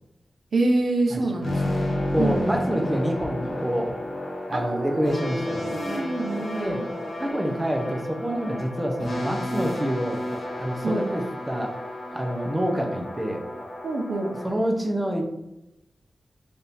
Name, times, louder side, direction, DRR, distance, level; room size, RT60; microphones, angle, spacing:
voice 1, 0.5-2.6 4.5-6.9 10.8-11.1 13.8-14.3, right 2 dB, 80° right, 2 dB, 0.6 m, -27 dB
sound 1, 1.4-14.5, left 1 dB, 75° left, 1.1 m, -31 dB
voice 2, 2.1-3.9 4.5-5.8 6.6-6.8 7.2-10.2 10.6-11.7 12.1-13.4 14.4-15.2, equal, 15° right, 2 dB, 0.6 m, -27 dB
3.5 x 2.7 x 4.1 m, 0.89 s
wide cardioid pair, 75°, 0 cm